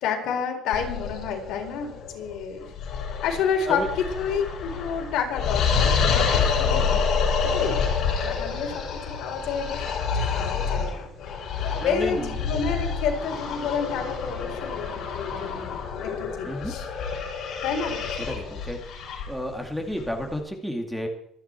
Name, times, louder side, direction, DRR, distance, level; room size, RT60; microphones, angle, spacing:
voice 1, 0.0-2.7 3.2-6.3 6.6-7.0 7.5-7.8 8.2-9.9 10.3-11.1 11.6-16.9 17.6-18.0, left 6 dB, 75° left, 3 dB, 4.1 m, -29 dB
sound 1, 0.7-20.4, left 5 dB, 55° left, 5.6 m, -28 dB
voice 2, 6.7-7.0 11.8-12.4 16.4-16.7 18.3-18.9 19.3-21.1, equal, ahead, 3 dB, 2.1 m, -31 dB
26.0 x 10.0 x 4.5 m, 0.71 s
cardioid pair, 155°, 0 cm